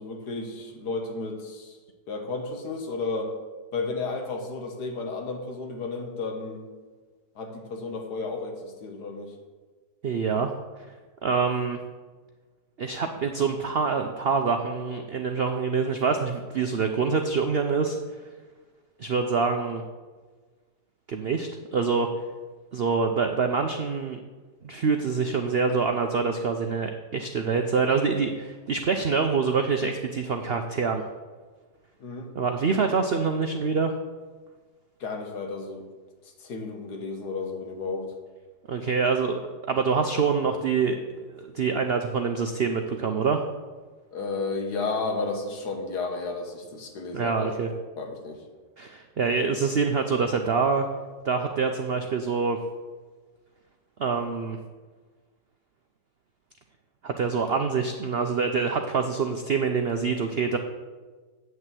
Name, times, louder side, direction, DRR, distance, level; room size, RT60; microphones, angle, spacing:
voice 1, 0.0-1.8 2.1-3.3 3.7-6.6 7.4-9.3 32.0-32.3 35.0-35.8 36.4-38.1 44.1-47.7 48.0-48.4, left 3 dB, 65° left, 3 dB, 1.9 m, -32 dB
voice 2, 10.0-10.5 11.2-11.8 12.8-18.0 19.0-19.8 21.1-22.1 22.7-24.2 24.6-31.0 32.3-33.9 38.7-39.4 39.7-43.4 47.1-47.7 48.8-50.9 51.2-52.6 54.0-54.6 57.0-60.6, right 5 dB, 90° right, 5 dB, 0.5 m, -25 dB
8.3 x 6.5 x 7.6 m, 1.4 s
omnidirectional pair, 1.9 m